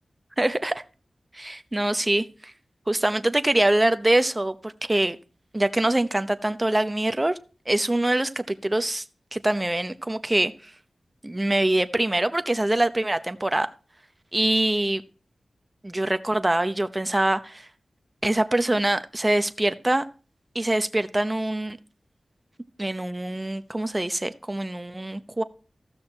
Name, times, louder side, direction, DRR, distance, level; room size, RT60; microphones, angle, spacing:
voice 1, 0.4-0.8 1.3-2.5 2.9-5.2 5.5-7.3 7.7-9.0 9.3-10.7 11.2-13.7 14.3-15.0 15.8-17.7 18.2-20.0 20.5-21.8 22.8-25.4, right 1 dB, 25° right, 0.9 m, -24 dB
14.5 x 6.3 x 4.4 m
cardioid pair, 40°, 0 cm